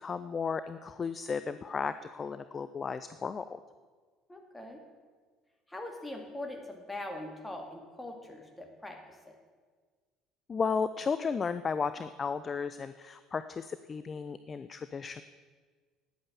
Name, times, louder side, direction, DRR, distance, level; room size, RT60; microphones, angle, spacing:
voice 1, 0.0-3.6 10.5-15.2, left 5 dB, 35° left, 12 dB, 0.4 m, -34 dB
voice 2, 4.3-4.8 5.7-9.4, left 1 dB, 10° left, 3 dB, 2.2 m, -42 dB
10.0 x 8.7 x 7.1 m, 1.5 s
hypercardioid pair, 60°, 0 cm